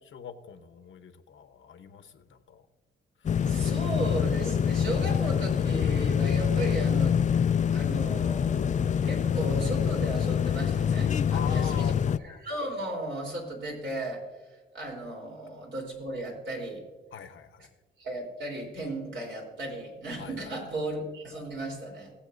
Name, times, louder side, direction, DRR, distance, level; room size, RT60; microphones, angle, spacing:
voice 1, 0.0-2.6 3.2-3.4 11.3-12.4 17.1-17.7 20.2-20.6, left 8 dB, 75° left, 9 dB, 0.9 m, -43 dB
sound 1, 3.3-12.2, left 8 dB, 35° left, 0.4 m, -25 dB
voice 2, 3.5-7.2 7.7-11.9 12.2-14.2 14.7-16.8 18.0-22.1, right 1 dB, 70° right, -1 dB, 3.6 m, -35 dB
20.0 x 7.7 x 2.6 m, 1.3 s
cardioid pair, 90°, 21 cm